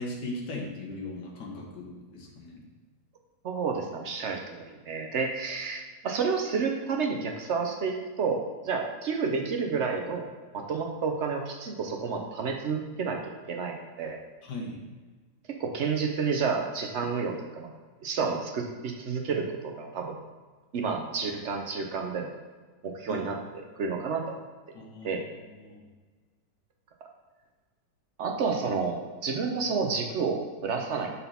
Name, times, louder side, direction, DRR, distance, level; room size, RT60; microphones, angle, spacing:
voice 1, 0.0-2.6 14.4-14.8 23.1-23.3 24.7-25.8, left 2 dB, 75° left, -1 dB, 1.8 m, -38 dB
voice 2, 3.4-10.2 10.5-14.2 15.6-17.7 18.0-20.2 20.7-22.3 22.8-23.4 23.8-24.4 25.0-25.2 28.2-31.1, right 5 dB, 60° right, 2 dB, 0.7 m, -30 dB
5.7 x 4.2 x 5.6 m, 1.4 s
omnidirectional pair, 1.9 m